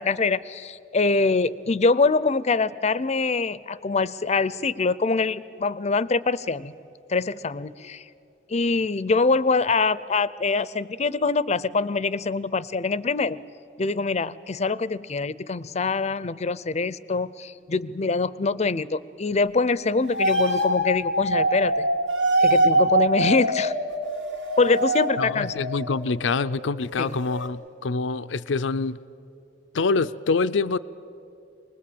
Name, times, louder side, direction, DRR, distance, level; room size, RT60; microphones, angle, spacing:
voice 1, 0.0-6.7 7.1-8.0 8.5-13.4 13.8-21.9 22.4-23.7 24.6-25.7 27.0-27.1, left 4 dB, 35° left, 18 dB, 0.5 m, -24 dB
sound 1, 20.1-26.7 26.9-27.5, right 1 dB, 75° right, 2.7 m, -24 dB
voice 2, 25.2-29.0 29.7-30.8, left 4 dB, 90° left, 13 dB, 0.5 m, -25 dB
24.0 x 20.0 x 8.6 m, 2.6 s
head